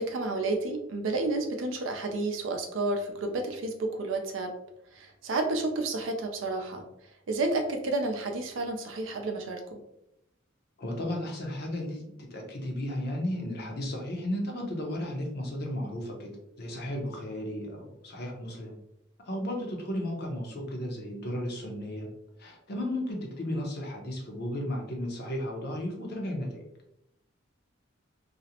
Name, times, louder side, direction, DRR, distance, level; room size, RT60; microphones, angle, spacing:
voice 1, 0.0-4.5 4.9-6.9 7.3-9.8, right 2 dB, 70° right, 5 dB, 0.4 m, -31 dB
voice 2, 10.8-16.3 16.6-18.8 19.2-22.1 22.4-26.6, left 1 dB, 55° left, 1 dB, 0.6 m, -34 dB
2.5 x 2.0 x 2.7 m, 0.82 s
head